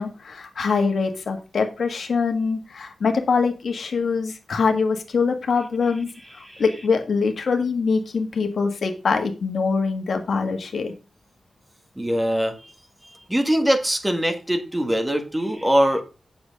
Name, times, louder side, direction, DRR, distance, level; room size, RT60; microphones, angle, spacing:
voice 1, 0.0-6.1 6.6-10.9, left 5 dB, 70° left, 5 dB, 1.7 m, -23 dB
voice 2, 12.0-12.6 13.3-16.0, equal, 10° right, 6 dB, 1.8 m, -22 dB
8.1 x 6.9 x 5.2 m, 0.32 s
wide cardioid pair, 95°, 0 cm